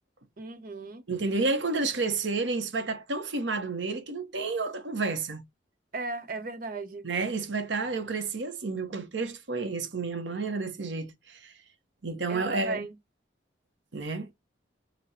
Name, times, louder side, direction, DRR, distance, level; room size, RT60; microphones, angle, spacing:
voice 1, 0.4-1.0 5.9-7.1 12.3-12.9, right 3 dB, 50° right, 0.8 m, -36 dB
voice 2, 1.1-5.4 7.0-11.5 12.0-12.8 13.9-14.3, right 3 dB, 85° right, 0.9 m, -30 dB
4.1 x 2.2 x 4.1 m
head